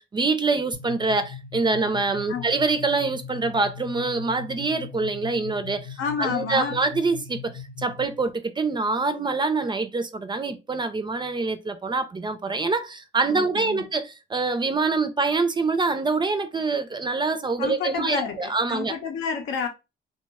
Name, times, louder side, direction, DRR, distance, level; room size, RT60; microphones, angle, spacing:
voice 1, 0.0-19.0, right 3 dB, 25° right, 0.4 m, -25 dB
sound 1, 0.7-8.3, left 6 dB, 45° left, 0.7 m, -40 dB
voice 2, 6.0-6.8 13.3-13.8 17.6-19.7, left 6 dB, 85° left, 0.7 m, -29 dB
2.9 x 2.1 x 3.4 m
cardioid pair, 90°, 20 cm